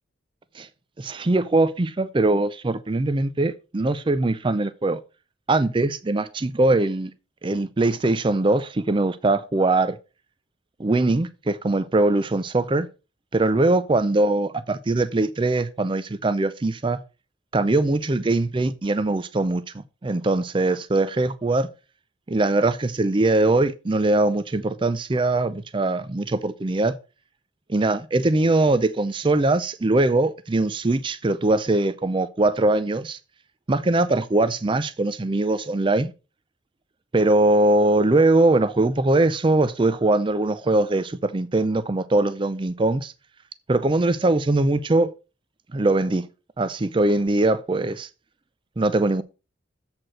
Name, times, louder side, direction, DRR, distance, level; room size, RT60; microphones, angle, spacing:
voice 1, 1.0-5.0 5.5-7.1 7.4-10.0 10.8-12.9 13.3-17.0 17.5-21.7 22.3-27.0 27.7-33.2 33.7-36.1 37.1-43.1 43.7-45.1 45.7-46.3 46.6-48.1 48.8-49.2, right 2 dB, 25° right, 0.4 m, -21 dB
7.6 x 4.4 x 6.3 m
head